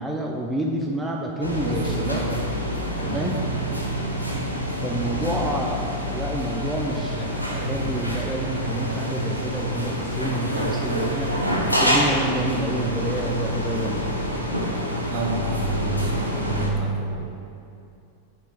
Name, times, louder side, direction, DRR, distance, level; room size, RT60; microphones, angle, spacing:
voice 1, 0.0-2.3 3.0-3.4 4.8-11.3 11.6-14.1, right 1 dB, 5° right, -1 dB, 0.6 m, -29 dB
sound 1, 1.4-16.7, equal, 90° left, 0.9 m, -27 dB
voice 2, 1.6-2.6 3.0-3.4 7.6-7.8 15.0-17.3, right 3 dB, 45° right, 1 dB, 1.1 m, -29 dB
5.8 x 5.6 x 5.9 m, 2.6 s
figure-of-eight pair, 90°, 0 cm